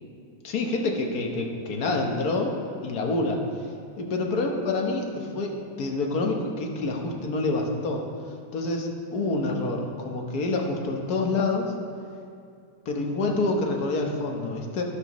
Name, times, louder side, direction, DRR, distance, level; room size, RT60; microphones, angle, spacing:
voice 1, 0.4-3.5 4.0-8.1 8.5-11.7 12.8-14.8, left 2 dB, 55° left, 1 dB, 1.5 m, -27 dB
12.0 x 12.0 x 3.0 m, 2.3 s
omnidirectional pair, 2.1 m